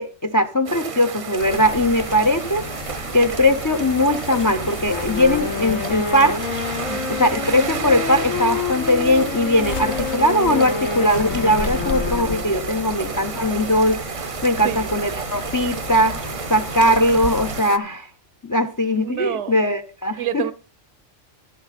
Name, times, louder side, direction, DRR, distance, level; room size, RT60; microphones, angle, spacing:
voice 1, 0.0-2.6 3.1-6.4 7.1-14.0 14.4-18.1 18.4-20.4, left 1 dB, 30° left, 0.4 m, -20 dB
sound 1, 0.6-17.8, right 5 dB, 40° right, 0.5 m, -32 dB
sound 2, 1.4-17.6, left 2 dB, 50° left, 1.5 m, -33 dB
Wind instrument woodwind instrument, 4.8-12.7, left 6 dB, 90° left, 1.3 m, -29 dB
voice 2, 11.8-12.7 14.6-14.9 16.5-16.7 19.0-19.6 20.2-20.5, right 10 dB, 70° right, 1.0 m, -30 dB
11.5 x 10.0 x 4.1 m
omnidirectional pair, 1.3 m